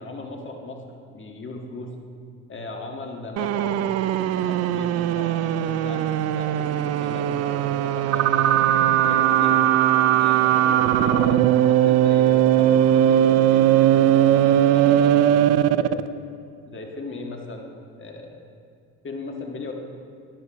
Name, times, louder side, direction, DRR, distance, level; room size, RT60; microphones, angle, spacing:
voice 1, 0.0-1.9 2.5-3.9 4.4-8.5 9.0-9.6 10.2-16.0 16.6-17.7 18.0-18.4 19.0-19.7, left 3 dB, 35° left, 2 dB, 1.7 m, -37 dB
sound 1, 3.4-16.1, right 11 dB, 45° right, 0.4 m, -19 dB
12.0 x 10.5 x 3.0 m, 2.4 s
hypercardioid pair, 65°, 36 cm